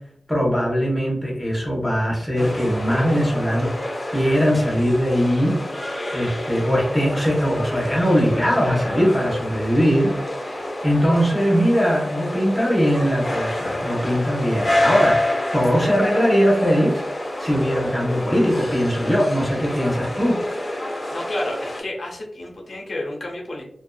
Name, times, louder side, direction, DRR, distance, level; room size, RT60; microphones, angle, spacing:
voice 1, 0.3-3.7 4.1-5.6 6.1-15.2 15.5-17.0 17.4-20.4, equal, 10° left, -3 dB, 0.9 m, -20 dB
sound 1, 2.3-21.8, left 1 dB, 35° left, 0.7 m, -28 dB
voice 2, 21.1-23.6, left 1 dB, 70° left, -2 dB, 0.6 m, -30 dB
2.5 x 2.3 x 2.2 m, 0.73 s
wide cardioid pair, 70°, 0 cm